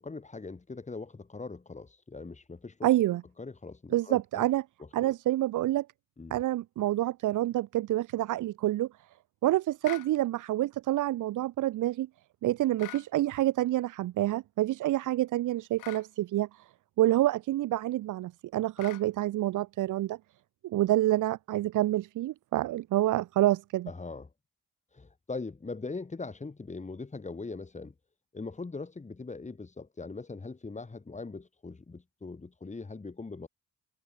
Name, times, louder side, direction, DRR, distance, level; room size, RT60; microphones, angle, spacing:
voice 1, 0.0-2.9 3.4-4.4 4.8-5.1 6.2-6.4 23.9-24.3 24.9-27.9 28.3-33.5, left 3 dB, 25° left, 4.3 m, -41 dB
voice 2, 2.8-3.2 3.9-4.6 4.9-5.9 6.3-8.9 9.4-12.1 12.4-16.7 17.0-20.2 20.6-23.9, right 15 dB, 80° right, 2.0 m, -27 dB
sound 1, 9.8-10.1 12.8-13.1 15.8-16.1 18.8-19.1, left 15 dB, 85° left, 2.1 m, -43 dB
cardioid pair, 90°, 30 cm